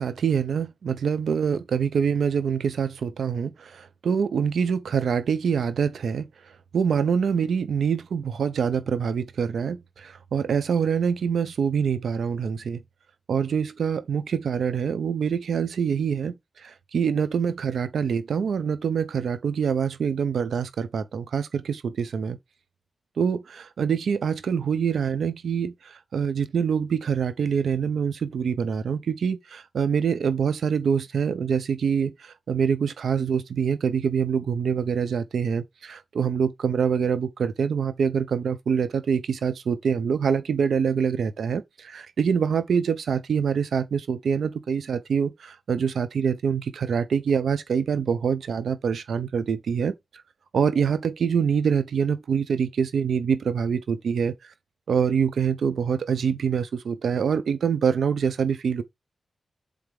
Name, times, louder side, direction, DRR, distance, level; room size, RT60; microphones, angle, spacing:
voice 1, 0.0-6.3 6.7-12.8 13.3-16.3 16.6-22.4 23.2-49.9 50.5-54.3 54.9-58.8, right 7 dB, 85° right, 0.8 m, -25 dB
8.1 x 3.7 x 3.5 m
cardioid pair, 70°, 0 cm